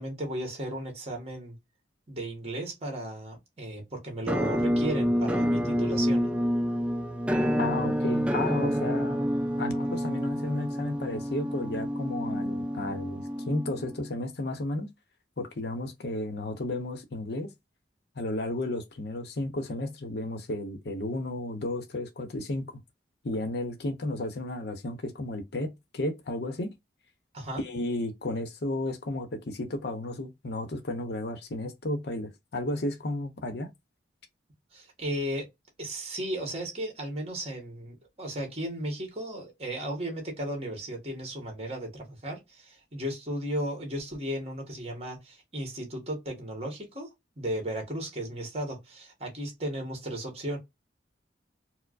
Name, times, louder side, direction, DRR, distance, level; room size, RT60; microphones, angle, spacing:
voice 1, 0.0-1.6 2.1-6.3 27.3-27.6 34.7-35.5 35.8-50.6, right 1 dB, 35° right, 1.4 m, -35 dB
Musical instrument, 4.3-14.1, equal, 5° right, 0.3 m, -28 dB
voice 2, 7.6-9.3 9.6-14.9 15.4-17.5 18.2-22.8 23.2-26.7 27.6-33.7, left 2 dB, 60° left, 0.7 m, -33 dB
4.5 x 2.0 x 2.4 m
head